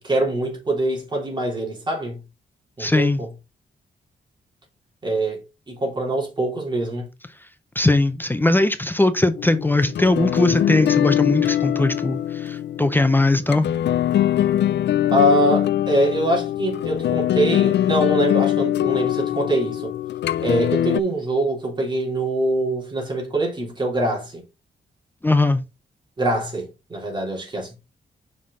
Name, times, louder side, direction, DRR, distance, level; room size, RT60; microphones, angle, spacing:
voice 1, 0.0-2.2 2.8-3.3 5.0-5.4 5.7-7.1 15.1-19.9 20.4-24.4 26.2-27.8, right 1 dB, 25° right, 3.3 m, -23 dB
voice 2, 2.8-3.2 7.8-13.7 25.2-25.6, left 2 dB, 10° left, 0.5 m, -19 dB
sound 1, 9.4-21.0, left 11 dB, 70° left, 0.4 m, -22 dB
5.5 x 5.4 x 3.8 m
wide cardioid pair, 140°, 19 cm